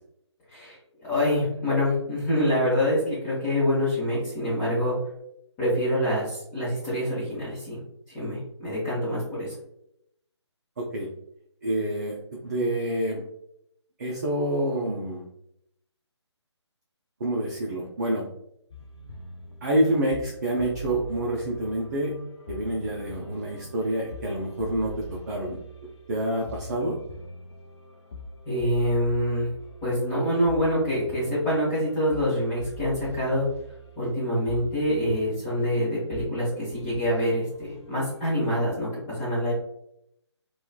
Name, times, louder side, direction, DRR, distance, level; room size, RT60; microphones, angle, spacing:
voice 1, 1.0-4.9 5.6-7.8 8.1-9.5 28.5-29.5 29.8-33.4 34.0-37.4 37.9-39.5, equal, 20° left, -11 dB, 0.9 m, -25 dB
voice 2, 10.8-11.1 11.6-12.2 12.4-13.2 14.0-15.2 17.2-18.3 19.6-22.2 22.5-25.6 26.1-27.0, right 1 dB, 35° right, -3 dB, 0.4 m, -27 dB
sound 1, 18.7-38.4, equal, 70° left, 0.5 m, -43 dB
2.9 x 2.2 x 2.3 m, 0.77 s
figure-of-eight pair, 150°, 15 cm